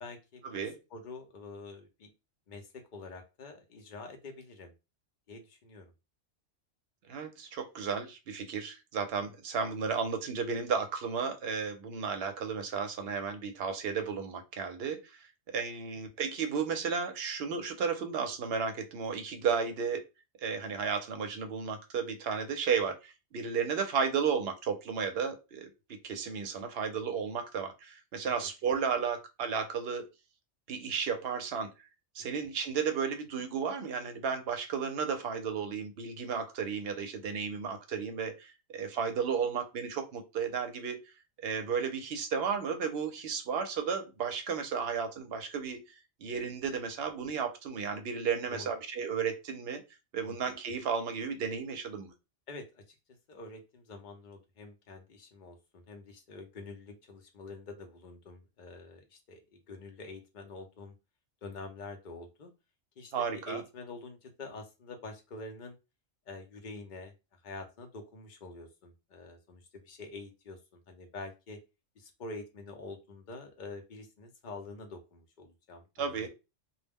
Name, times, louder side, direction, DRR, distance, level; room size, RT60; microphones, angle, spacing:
voice 1, 0.0-0.6 0.9-2.1 2.5-4.7 5.3-5.9 28.2-28.3 32.2-32.4 48.5-48.7 50.2-50.4 52.5-52.9 53.3-60.9 61.4-62.5 63.0-65.8 66.3-71.6 72.0-76.3, left 3 dB, 50° left, 4 dB, 0.6 m, -46 dB
voice 2, 7.1-20.0 20.4-30.1 30.7-31.7 32.1-41.0 41.4-45.8 46.2-49.8 50.1-52.1 63.1-63.6 76.0-76.3, right 6 dB, 65° right, 6 dB, 0.8 m, -33 dB
2.3 x 2.0 x 3.4 m, 0.27 s
omnidirectional pair, 1.2 m